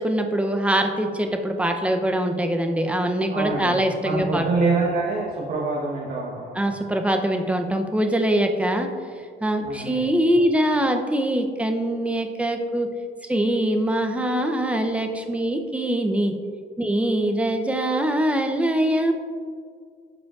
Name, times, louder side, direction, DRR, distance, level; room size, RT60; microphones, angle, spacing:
voice 1, 0.0-4.7 6.6-8.9 9.4-12.9 13.2-16.3 16.8-19.1, right 1 dB, 5° right, 4 dB, 0.6 m, -23 dB
voice 2, 3.3-3.8 4.0-6.6 9.6-10.1, right 3 dB, 55° right, -3 dB, 1.1 m, -26 dB
12.0 x 4.9 x 2.4 m, 2.1 s
cardioid pair, 110°, 17 cm